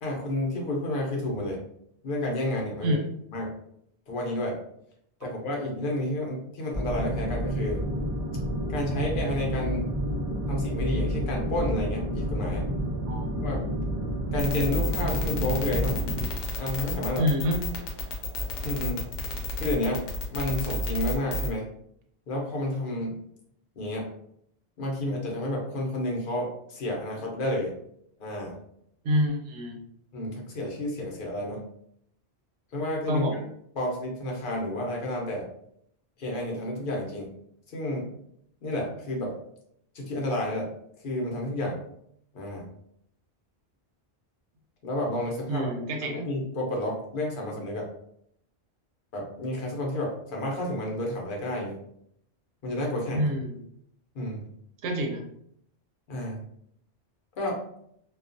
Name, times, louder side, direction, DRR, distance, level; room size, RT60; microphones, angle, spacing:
voice 1, 0.0-1.6 2.0-3.0 3.3-3.5 4.1-4.6 5.2-7.8 8.7-9.9 10.5-12.6 13.4-13.6 14.3-16.0 16.6-17.3 18.6-19.1 19.5-20.0 20.3-21.7 22.3-23.2 23.8-24.1 24.8-27.7 28.2-28.6 30.1-31.6 32.7-33.2 33.8-35.4 36.2-37.3 37.7-38.1 38.6-39.3 39.9-40.7 41.0-41.8 42.3-42.7 44.8-45.7 46.0-47.9 49.1-51.8 52.6-53.3 54.1-54.4 56.1-56.4 57.4-57.6, left 1 dB, 55° left, -1 dB, 0.8 m, -30 dB
sound 1, 6.7-16.3, equal, 60° right, 0.3 m, -30 dB
sound 2, 14.4-21.5, left 1 dB, 85° left, 0.9 m, -31 dB
voice 2, 17.2-17.6 29.0-29.8 33.1-33.4 45.5-46.2 53.1-53.6 54.8-55.2, equal, 85° right, 2 dB, 0.9 m, -27 dB
2.3 x 2.3 x 2.5 m, 0.71 s
omnidirectional pair, 1.1 m